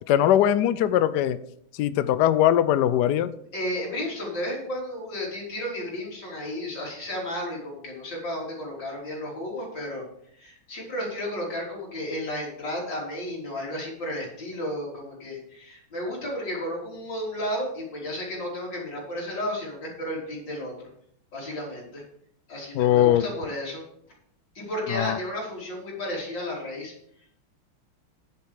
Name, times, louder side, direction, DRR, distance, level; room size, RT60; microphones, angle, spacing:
voice 1, 0.1-1.4 1.8-3.3 22.7-23.3 24.9-25.2, left 11 dB, 80° left, 15 dB, 0.9 m, -21 dB
voice 2, 3.5-10.0 10.4-20.7 21.3-22.0 22.5-23.8 24.5-26.9, left 1 dB, 55° left, -4 dB, 4.3 m, -33 dB
9.9 x 8.1 x 4.9 m, 0.69 s
omnidirectional pair, 2.4 m